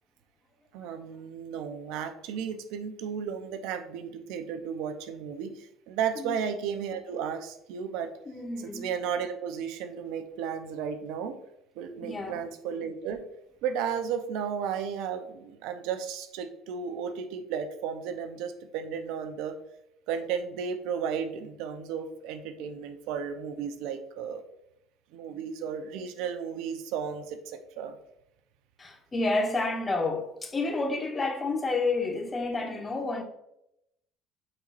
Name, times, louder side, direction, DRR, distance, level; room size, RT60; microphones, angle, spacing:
voice 1, 0.7-8.1 8.6-11.4 11.8-13.2 13.6-19.6 20.1-24.4 25.1-28.0, right 7 dB, 75° right, 0.7 m, -34 dB
voice 2, 8.3-8.9 12.0-12.4 28.8-33.2, left 3 dB, 25° left, 1.2 m, -30 dB
8.9 x 4.3 x 2.6 m
supercardioid pair, 85°, 0 cm